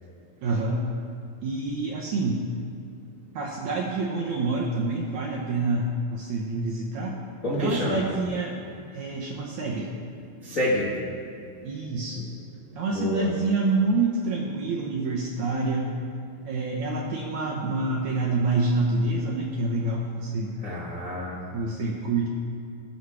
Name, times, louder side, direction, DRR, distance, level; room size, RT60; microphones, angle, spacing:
voice 1, 0.4-0.9 1.4-2.4 3.4-7.2 7.6-8.6 8.9-9.9 11.6-12.3 12.7-15.9 16.5-20.6 21.5-22.3, right 3 dB, 70° right, -2 dB, 1.8 m, -27 dB
voice 2, 7.4-8.1 9.1-9.3 9.6-9.7 10.2-11.0 11.3-11.4 12.9-13.3 20.6-21.4, left 1 dB, 55° left, -7 dB, 0.8 m, -28 dB
18.0 x 6.4 x 4.8 m, 2.6 s
omnidirectional pair, 4.4 m